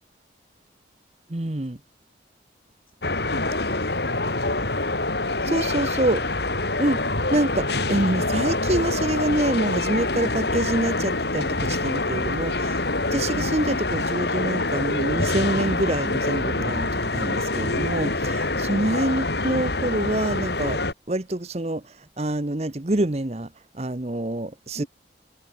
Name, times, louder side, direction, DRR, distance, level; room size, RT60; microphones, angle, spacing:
voice 1, 1.3-1.8 5.5-6.2 6.8-7.0 7.3-12.8 13.1-20.8 21.1-21.8 22.2-24.8, right 1 dB, 35° right, 1.0 m, -26 dB
sound 1, 3.0-20.9, left 2 dB, 65° left, 3.4 m, -25 dB
voice 2, 3.3-4.9 5.4-7.2 24.7-24.9, left 1 dB, 50° left, 6.4 m, -38 dB
head